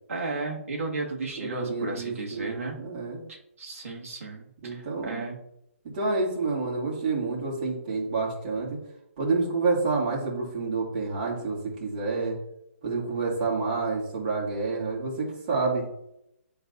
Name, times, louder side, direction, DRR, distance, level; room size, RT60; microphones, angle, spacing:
voice 1, 0.1-2.8 3.3-5.4, right 3 dB, 75° right, -1 dB, 2.1 m, -34 dB
voice 2, 1.4-3.2 4.6-5.3 5.8-8.8 9.2-12.4 12.8-15.8, right 3 dB, 40° right, -4 dB, 2.5 m, -28 dB
10.5 x 3.9 x 2.7 m, 0.79 s
hypercardioid pair, 165°, 8 cm